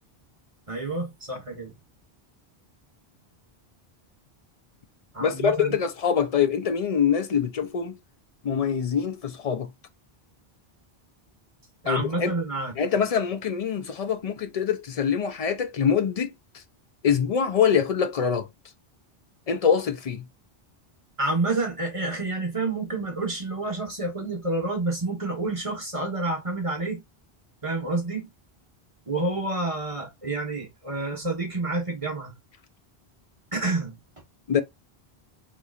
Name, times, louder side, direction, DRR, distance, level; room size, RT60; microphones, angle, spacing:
voice 1, 0.7-1.8 5.1-5.8 11.8-12.7 21.2-27.0 27.6-28.3 29.1-32.3 33.5-34.0, right 2 dB, 35° right, 1.2 m, -29 dB
voice 2, 5.2-8.0 8.4-9.7 11.9-12.3 12.8-16.3 17.0-18.5 19.5-20.3 34.5-34.6, left 7 dB, 50° left, 0.4 m, -24 dB
3.9 x 3.1 x 2.4 m
omnidirectional pair, 1.0 m